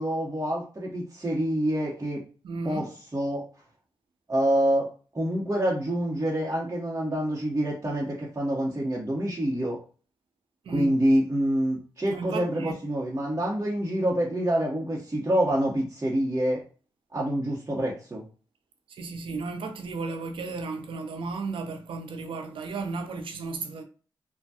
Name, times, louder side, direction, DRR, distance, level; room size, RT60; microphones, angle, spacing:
voice 1, 0.0-2.2 2.6-2.9 3.1-3.4 4.3-4.9 5.1-9.8 10.7-16.6 17.1-18.2, right 1 dB, 30° right, 1.0 m, -26 dB
voice 2, 2.4-2.9 10.6-10.9 12.1-12.8 18.9-23.8, right 3 dB, 75° right, 0.6 m, -34 dB
3.2 x 2.2 x 2.8 m
supercardioid pair, 40°, 9 cm